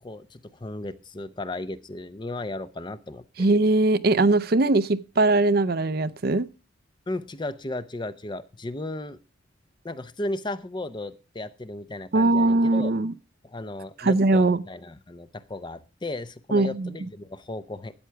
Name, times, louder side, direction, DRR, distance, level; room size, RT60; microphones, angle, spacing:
voice 1, 0.0-3.5 7.1-9.2 9.8-12.9 13.4-17.9, left 2 dB, 25° left, 0.6 m, -35 dB
voice 2, 3.4-6.5 12.1-13.1 14.0-14.6 16.5-16.9, right 2 dB, 50° right, 0.6 m, -21 dB
13.0 x 9.0 x 4.6 m
head